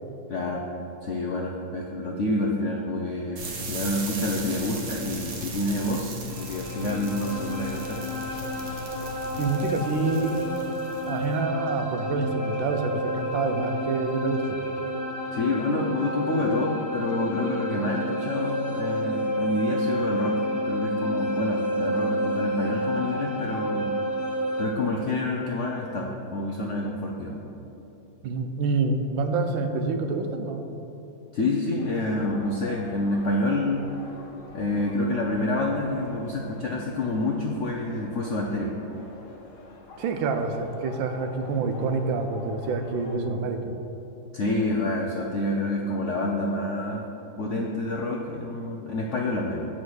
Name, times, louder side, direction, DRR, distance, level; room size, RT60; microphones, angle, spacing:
voice 1, 0.3-0.6 1.0-8.0 15.3-24.0 24.6-27.4 31.3-33.8 34.5-38.7 44.3-47.0 47.4-49.7, left 2 dB, 85° left, -1 dB, 0.6 m, -28 dB
sound 1, 3.4-11.3, equal, 60° right, 1.5 m, -37 dB
sound 2, 6.3-24.7, equal, 45° left, 1.5 m, -30 dB
voice 2, 9.4-10.5 11.1-14.6 28.2-30.8 40.0-43.7, right 3 dB, 85° right, 6 dB, 1.4 m, -27 dB
sound 3, 31.8-43.2, left 2 dB, 65° left, 1.4 m, -47 dB
8.6 x 4.3 x 6.3 m, 3.0 s
omnidirectional pair, 2.1 m